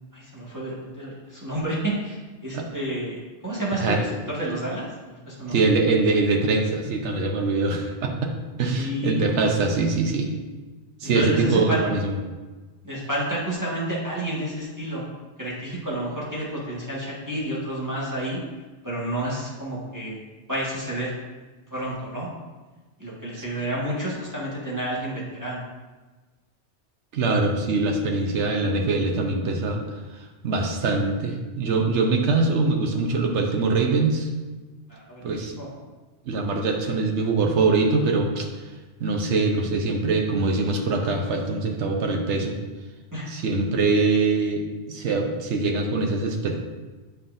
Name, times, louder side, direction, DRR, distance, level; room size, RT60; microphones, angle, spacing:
voice 1, 0.1-3.2 3.4-5.6 8.8-9.2 11.0-11.8 12.8-15.0 15.4-18.4 18.8-20.2 20.5-21.1 21.7-22.3 23.0-25.6 34.9-35.3 35.6-35.7 43.1-43.3, right 1 dB, 15° right, -7 dB, 1.5 m, -30 dB
voice 2, 5.5-8.1 8.6-10.3 11.0-12.1 27.1-29.8 30.1-34.3 35.2-35.6 36.3-38.5 39.0-42.6 43.3-46.6, right 3 dB, 80° right, 2 dB, 1.1 m, -23 dB
8.9 x 5.6 x 2.6 m, 1.3 s
omnidirectional pair, 1.2 m